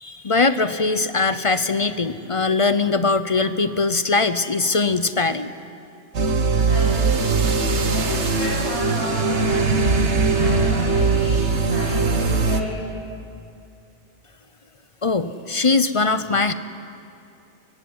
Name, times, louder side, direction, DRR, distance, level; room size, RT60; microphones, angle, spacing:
voice 1, 0.0-5.5 15.0-16.5, left 3 dB, 35° left, 11 dB, 0.6 m, -21 dB
sound 1, 6.1-12.6, right 4 dB, 65° right, 1.5 m, -20 dB
voice 2, 6.6-7.6 7.9-10.0 10.3-13.0, equal, 60° left, -8 dB, 5.7 m, -32 dB
22.5 x 16.5 x 9.7 m, 2.6 s
omnidirectional pair, 1.2 m